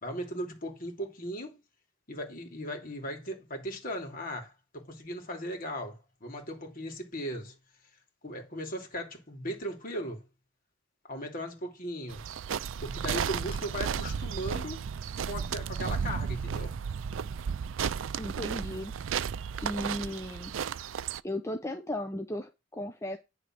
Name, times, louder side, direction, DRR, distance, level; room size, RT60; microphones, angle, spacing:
voice 1, 0.0-1.6 2.1-7.5 8.2-10.2 11.1-12.2 12.8-14.8 15.3-16.8, equal, 45° left, 2.9 m, -37 dB
sound 1, 12.1-21.2, right 7 dB, 85° right, 0.4 m, -34 dB
voice 2, 18.2-18.9 19.6-20.5 21.2-23.2, left 1 dB, 15° left, 0.7 m, -35 dB
10.0 x 3.9 x 6.0 m
head